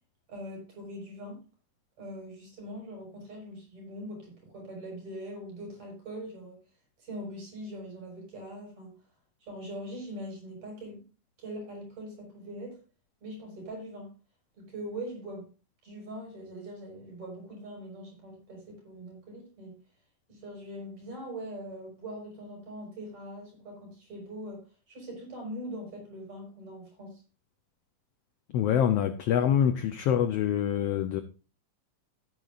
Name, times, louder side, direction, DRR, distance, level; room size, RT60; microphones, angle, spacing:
voice 1, 0.3-1.4 2.0-6.6 7.0-9.0 9.4-11.0 11.4-12.8 13.2-14.1 14.6-15.5 15.8-19.8 20.3-27.2, equal, 60° right, 7.2 m, -42 dB
voice 2, 28.5-31.2, left 9 dB, 90° left, 1.3 m, -25 dB
15.5 x 9.2 x 2.5 m
omnidirectional pair, 3.6 m